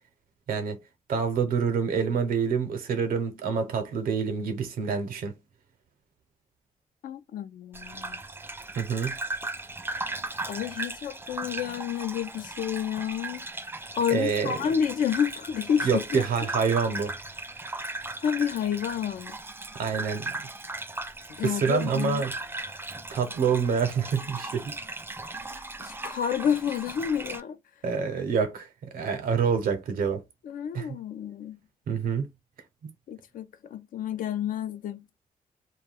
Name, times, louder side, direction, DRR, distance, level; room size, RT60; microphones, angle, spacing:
voice 1, 0.5-0.8 1.1-5.3 8.8-9.2 14.1-14.6 15.8-17.2 19.7-20.3 21.4-22.3 23.1-24.8 27.8-30.2 30.7-30.9 31.9-32.3, right 6 dB, 85° right, 0.7 m, -27 dB
voice 2, 7.0-8.2 10.5-13.5 13.9-16.2 18.2-19.4 21.4-22.2 25.8-27.6 30.4-31.6 33.1-35.0, left 8 dB, 75° left, 0.4 m, -29 dB
Gurgling / Bathtub (filling or washing), 7.7-27.4, right 2 dB, 15° right, 0.4 m, -37 dB
2.2 x 2.2 x 3.3 m
cardioid pair, 80°, 14 cm